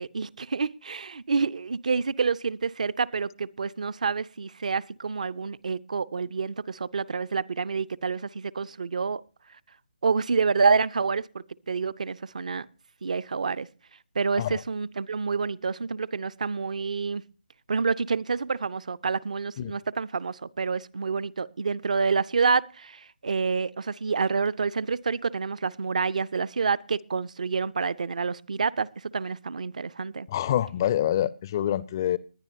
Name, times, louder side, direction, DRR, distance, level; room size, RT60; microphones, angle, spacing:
voice 1, 0.0-9.2 10.0-12.6 13.0-13.7 14.1-17.2 17.7-30.3, right 5 dB, 50° right, 0.5 m, -28 dB
voice 2, 30.3-32.2, left 11 dB, 25° left, 0.5 m, -26 dB
20.5 x 10.5 x 2.7 m
figure-of-eight pair, 145°, 5 cm